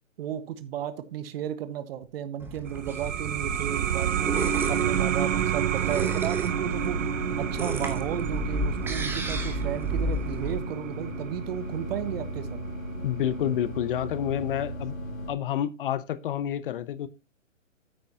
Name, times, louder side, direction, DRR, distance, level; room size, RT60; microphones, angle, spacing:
voice 1, 0.2-4.4 4.7-7.0 7.4-12.6, right 10 dB, 45° right, 1.4 m, -34 dB
sound 1, 2.4-10.5, right 1 dB, 5° right, 0.9 m, -33 dB
sound 2, 2.6-13.8, right 9 dB, 70° right, 0.8 m, -30 dB
sound 3, 6.5-15.3, equal, 90° left, 4.2 m, -36 dB
voice 2, 13.0-15.0 15.3-17.1, left 11 dB, 40° left, 0.7 m, -29 dB
9.2 x 9.2 x 2.8 m
hypercardioid pair, 135°, 39 cm